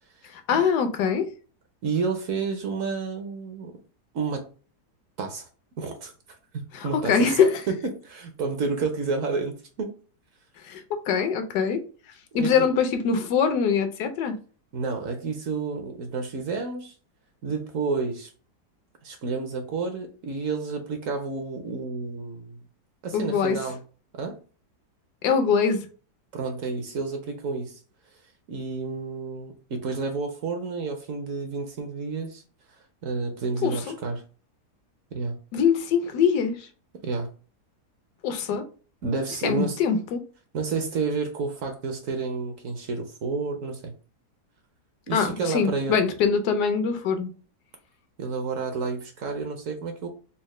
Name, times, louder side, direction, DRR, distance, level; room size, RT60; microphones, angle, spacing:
voice 1, 0.3-1.3 6.7-7.6 10.6-10.8 11.1-11.8 12.3-14.4 23.1-23.6 25.2-25.9 33.6-33.9 35.5-36.7 38.2-38.6 39.4-40.2 45.1-47.3, left 6 dB, 80° left, 1.2 m, -23 dB
voice 2, 1.8-3.7 4.1-4.5 5.2-5.5 5.8-6.1 6.5-9.9 12.4-12.7 14.7-16.9 17.4-18.3 19.0-22.6 23.0-23.8 24.2-24.4 26.3-27.8 28.5-32.4 33.0-34.2 35.1-35.4 37.0-37.3 39.0-39.8 40.5-43.9 45.1-46.0 48.2-50.1, right 4 dB, 65° right, 0.9 m, -30 dB
4.1 x 2.1 x 3.1 m
omnidirectional pair, 1.7 m